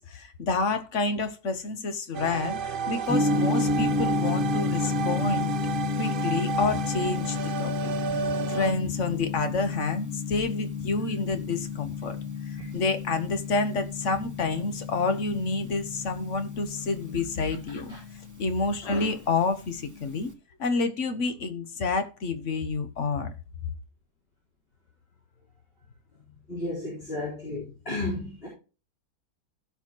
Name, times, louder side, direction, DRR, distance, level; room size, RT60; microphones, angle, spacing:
voice 1, 0.0-5.5 6.0-7.9 8.2-12.2 12.5-18.0 18.4-20.3 20.6-23.3, left 3 dB, 55° left, 1.3 m, -29 dB
sound 1, 2.1-8.7, right 6 dB, 55° right, 0.6 m, -32 dB
Gong, 3.1-20.3, left 4 dB, 10° right, 1.2 m, -31 dB
voice 2, 18.8-19.1 26.5-28.5, left 2 dB, 35° left, 4.2 m, -33 dB
16.0 x 5.9 x 3.0 m
omnidirectional pair, 1.7 m